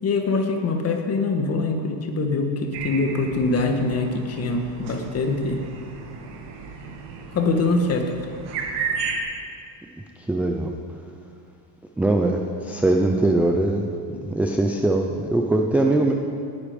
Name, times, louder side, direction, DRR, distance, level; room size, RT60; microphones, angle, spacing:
voice 1, 0.0-5.6 7.3-8.1, left 3 dB, 30° left, 4 dB, 1.5 m, -23 dB
sound 1, 2.7-9.2, right 5 dB, 55° right, 2.1 m, -34 dB
voice 2, 10.2-10.7 12.0-16.1, right 2 dB, 5° right, 2 dB, 0.4 m, -22 dB
18.0 x 10.0 x 5.2 m, 2.4 s
cardioid pair, 145°, 49 cm